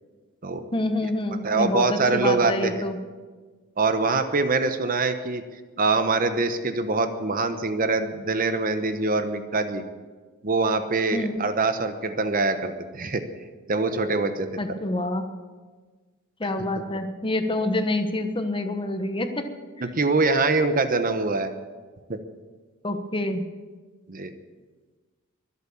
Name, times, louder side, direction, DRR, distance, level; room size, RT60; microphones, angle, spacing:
voice 1, 0.7-3.0 11.1-11.4 14.6-15.3 16.4-19.4 19.8-19.9 22.8-23.4, left 1 dB, 25° left, 7 dB, 1.1 m, -27 dB
voice 2, 1.4-2.8 3.8-5.4 5.8-9.8 10.4-13.2 13.7-14.5 19.8-21.5 22.1-22.2 24.1-24.3, right 3 dB, 40° right, 9 dB, 1.0 m, -24 dB
23.0 x 8.4 x 7.1 m, 1.4 s
head